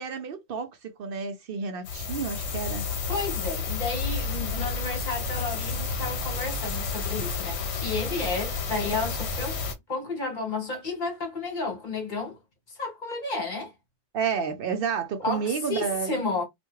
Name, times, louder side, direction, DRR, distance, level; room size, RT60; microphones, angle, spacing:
voice 1, 0.0-2.9 14.1-16.2, right 6 dB, 60° right, 0.6 m, -30 dB
sound 1, 1.8-9.7, left 4 dB, 70° left, 0.9 m, -31 dB
voice 2, 3.1-9.6 9.9-12.4 12.7-13.7 15.2-16.5, left 3 dB, 45° left, 1.2 m, -32 dB
2.4 x 2.2 x 3.0 m
omnidirectional pair, 1.2 m